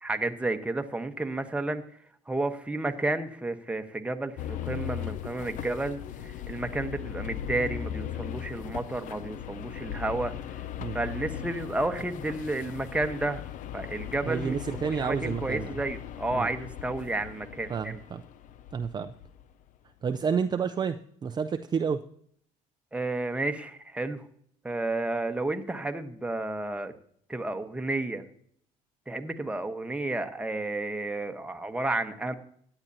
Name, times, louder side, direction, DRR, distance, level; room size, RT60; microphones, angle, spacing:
voice 1, 0.0-1.8 2.3-10.6 10.9-13.4 13.7-18.0 22.9-24.3 24.6-26.9 27.3-28.2 29.1-32.3, right 2 dB, 10° right, 6 dB, 1.0 m, -31 dB
sound 1, 4.4-19.5, left 10 dB, 60° left, 0.6 m, -38 dB
voice 2, 14.3-15.7 16.3-16.5 17.7-18.2 18.7-19.1 20.0-21.0 21.2-22.0, right 6 dB, 30° right, 7 dB, 0.5 m, -29 dB
16.0 x 9.9 x 2.7 m, 0.64 s
supercardioid pair, 95°, 15 cm